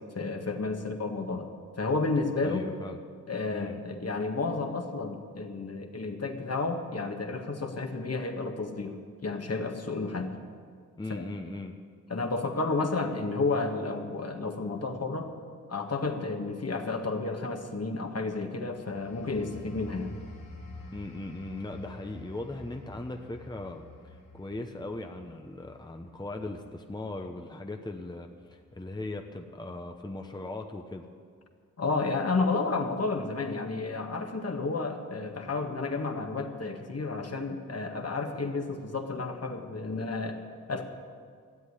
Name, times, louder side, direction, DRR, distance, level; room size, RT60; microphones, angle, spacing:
voice 1, 0.1-1.5 1.8-2.6 3.3-10.4 11.1-11.2 12.1-15.3 15.7-20.2 31.8-40.8, left 3 dB, 45° left, 4 dB, 1.7 m, -31 dB
voice 2, 2.4-3.0 3.5-3.8 11.0-11.8 20.9-31.1, left 2 dB, 15° left, 4 dB, 1.0 m, -39 dB
sound 1, 18.8-29.1 29.5-29.8, left 2 dB, 80° left, 2.1 m, -49 dB
13.5 x 8.0 x 9.6 m, 2.1 s
cardioid pair, 45°, 34 cm